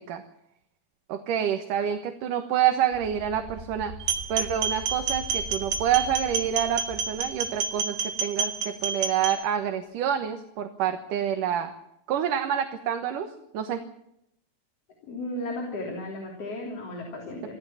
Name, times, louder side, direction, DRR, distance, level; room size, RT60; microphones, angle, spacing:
voice 1, 1.1-3.9 4.3-11.7 12.1-13.8, right 9 dB, 90° right, 6 dB, 3.0 m, -27 dB
sound 1, 2.9-7.9, right 1 dB, 25° right, 2.1 m, -42 dB
sound 2, 4.0-9.4, right 5 dB, 65° right, 3.5 m, -29 dB
voice 2, 15.0-17.6, left 1 dB, 50° left, 1 dB, 4.3 m, -35 dB
25.5 x 15.5 x 7.3 m, 0.77 s
omnidirectional pair, 3.6 m